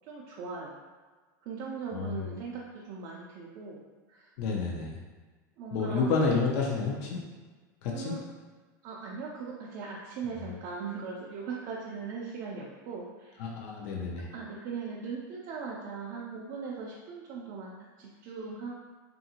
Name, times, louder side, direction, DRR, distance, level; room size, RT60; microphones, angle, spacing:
voice 1, 0.1-0.7 1.4-3.8 4.1-4.3 5.6-6.2 7.9-8.2 8.8-13.5 14.2-18.8, right 5 dB, 40° right, -4 dB, 0.4 m, -39 dB
voice 2, 1.9-2.3 4.4-5.0 5.7-7.2 7.8-8.1 13.4-14.3, left 4 dB, 50° left, -1 dB, 0.5 m, -29 dB
2.8 x 2.5 x 2.7 m, 1.4 s
supercardioid pair, 155°, 10 cm